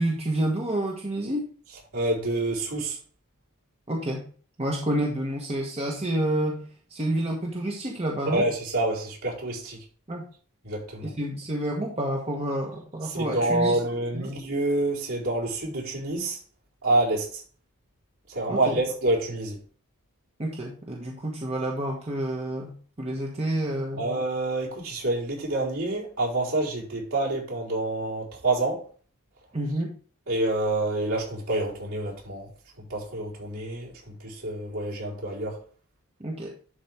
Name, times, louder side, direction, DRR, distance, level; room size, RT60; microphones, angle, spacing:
voice 1, 0.0-1.4 3.9-4.3 4.6-8.5 10.1-10.2 11.0-13.8 14.1-14.3 18.5-18.8 20.4-24.1 29.5-29.9 36.2-36.5, right 1 dB, 30° right, 1.3 m, -29 dB
voice 2, 1.9-3.0 8.3-9.8 10.6-11.1 13.1-16.4 16.8-17.4 18.3-19.6 24.0-28.8 30.3-32.5 32.9-35.6, right 2 dB, 65° right, 4.4 m, -27 dB
11.5 x 4.6 x 3.5 m
head